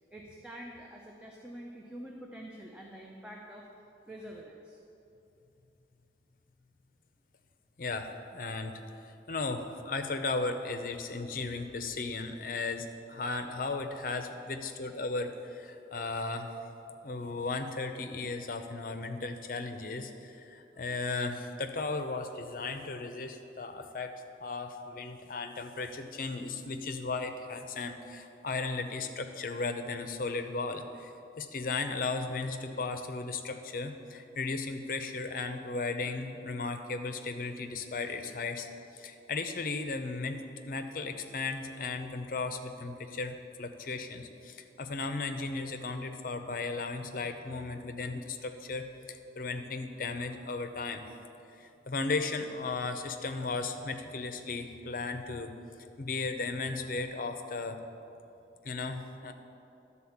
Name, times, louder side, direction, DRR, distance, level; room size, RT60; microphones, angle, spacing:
voice 1, 0.1-3.7 4.1-4.8, equal, 5° right, -2 dB, 0.6 m, -46 dB
voice 2, 7.8-8.8 9.3-16.6 17.0-31.1 31.4-38.7 38.9-51.1 51.5-55.5 56.0-57.8 58.6-59.3, left 3 dB, 50° left, 7 dB, 0.6 m, -36 dB
12.0 x 4.2 x 7.1 m, 2.8 s
head